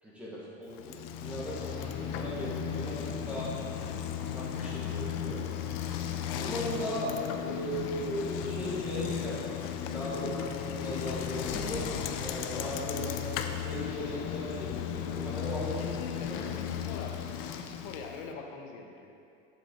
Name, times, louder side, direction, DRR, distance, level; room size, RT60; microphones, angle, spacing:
voice 1, 0.0-3.5 4.3-5.4 6.3-13.2 13.5-15.9 16.3-16.4, equal, 5° right, -8 dB, 1.4 m, -37 dB
Bicycle, 0.7-18.3, left 9 dB, 45° left, 0.4 m, -35 dB
voice 2, 15.8-19.1, left 4 dB, 85° left, 2 dB, 1.0 m, -43 dB
7.4 x 7.2 x 3.7 m, 2.5 s
cardioid pair, 175°, 29 cm